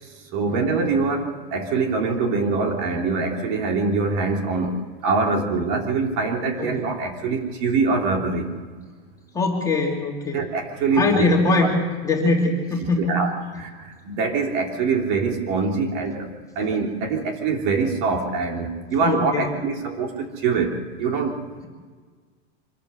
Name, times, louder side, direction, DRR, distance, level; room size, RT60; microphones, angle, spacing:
voice 1, 0.3-4.8 5.0-8.5 10.3-11.2 11.6-11.7 13.0-16.3 16.5-21.4, right 4 dB, 50° right, 2 dB, 3.4 m, -24 dB
voice 2, 9.3-10.4 11.0-11.8 12.0-13.2 19.0-19.4, left 2 dB, 10° left, -1 dB, 2.7 m, -22 dB
25.5 x 14.0 x 8.3 m, 1.5 s
supercardioid pair, 155°, 32 cm